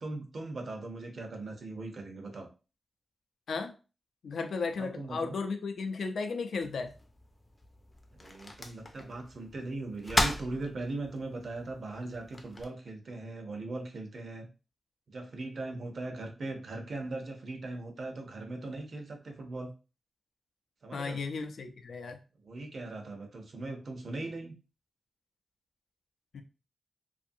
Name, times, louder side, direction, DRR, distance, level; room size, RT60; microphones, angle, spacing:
voice 1, 0.0-2.5 4.8-5.4 8.2-14.5 15.1-19.7 20.8-21.2 22.4-24.5, right 2 dB, 55° right, 3 dB, 0.6 m, -39 dB
voice 2, 4.2-6.9 20.9-22.2 26.3-26.4, left 4 dB, 80° left, 6 dB, 0.4 m, -35 dB
sound 1, 6.6-12.7, left 1 dB, 20° left, 0.4 m, -37 dB
2.6 x 2.5 x 2.6 m, 0.32 s
wide cardioid pair, 160°, 0 cm